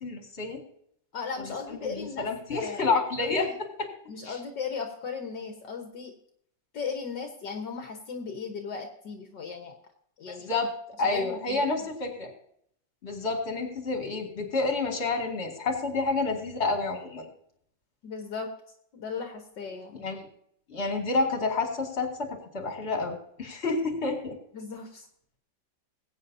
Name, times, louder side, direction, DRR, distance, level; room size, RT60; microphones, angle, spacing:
voice 1, 0.0-0.6 1.4-3.5 3.8-3.9 4.2-4.4 10.3-10.7 11.0-12.3 13.0-17.3 20.0-20.3 20.7-24.4, left 3 dB, 35° left, 3 dB, 2.4 m, -29 dB
voice 2, 1.1-2.3 2.5-2.9 3.2-3.5 4.1-6.1 6.7-9.8 10.2-10.5 11.0-11.6 18.0-18.5 18.9-20.0 24.5-25.1, left 5 dB, 70° left, 4 dB, 1.9 m, -36 dB
20.5 x 8.9 x 2.7 m, 0.69 s
omnidirectional pair, 2.0 m